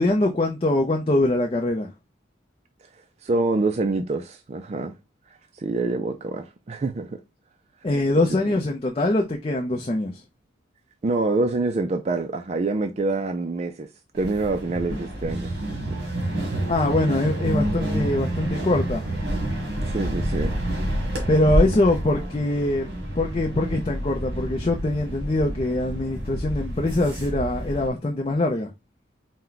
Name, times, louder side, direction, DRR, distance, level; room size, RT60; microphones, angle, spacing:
voice 1, 0.0-1.9 7.8-10.2 16.7-19.0 21.3-22.9 23.2-28.7, left 2 dB, 30° left, 0.5 m, -23 dB
voice 2, 3.2-4.9 5.3-7.2 11.0-13.9 14.1-15.5 15.9-16.1 19.8-20.6, right 3 dB, 35° right, 0.3 m, -26 dB
sound 1, 14.2-27.9, right 1 dB, 55° right, 1.4 m, -28 dB
4.4 x 2.1 x 3.9 m
head